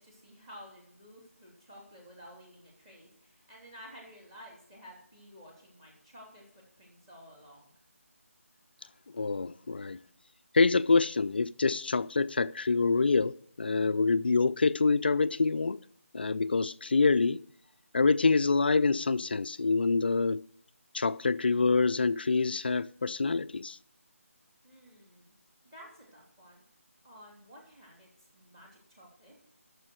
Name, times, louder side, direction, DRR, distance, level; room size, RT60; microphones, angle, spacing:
voice 1, 0.0-7.7 24.6-25.3 25.7-26.6 27.0-29.3, equal, 20° right, 2.8 m, -53 dB
voice 2, 9.1-10.0 10.5-15.8 16.1-17.4 17.9-20.4 20.9-23.8, left 4 dB, 45° left, 0.3 m, -26 dB
11.0 x 6.7 x 6.2 m
figure-of-eight pair, 170°, 8 cm